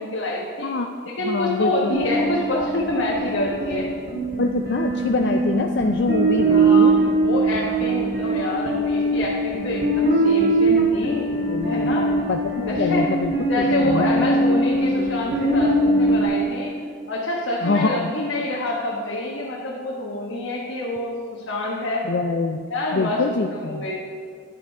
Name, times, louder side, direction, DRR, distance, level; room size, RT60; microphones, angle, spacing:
voice 1, 0.0-0.7 1.0-3.9 6.5-11.3 11.6-12.1 12.7-13.1 13.5-16.7 17.1-22.0 22.7-23.2 23.5-23.9, left 1 dB, 85° left, -4 dB, 1.3 m, -27 dB
voice 2, 1.2-2.0 4.4-7.0 11.5-11.9 12.3-14.3 17.6-18.1 22.0-22.6 22.9-23.8, left 3 dB, 60° left, 4 dB, 0.4 m, -24 dB
sound 1, 1.9-16.3, right 2 dB, 55° right, 2.0 m, -21 dB
10.5 x 8.0 x 4.7 m, 2.1 s
head